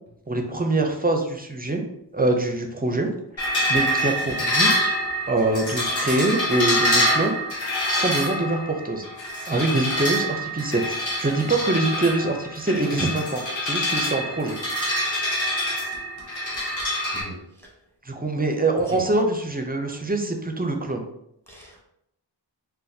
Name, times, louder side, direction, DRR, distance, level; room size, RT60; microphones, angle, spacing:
voice 1, 0.3-1.8 2.1-3.1 3.4-5.0 5.3-7.4 7.9-9.0 9.5-14.6 18.1-21.0, right 2 dB, 20° right, 3 dB, 0.4 m, -24 dB
sound 1, 3.4-17.2, equal, 70° left, 1.1 m, -25 dB
voice 2, 17.1-17.7 18.9-19.0 21.5-21.8, equal, 5° left, -2 dB, 0.9 m, -39 dB
4.0 x 2.2 x 2.6 m, 0.78 s
wide cardioid pair, 60°, 46 cm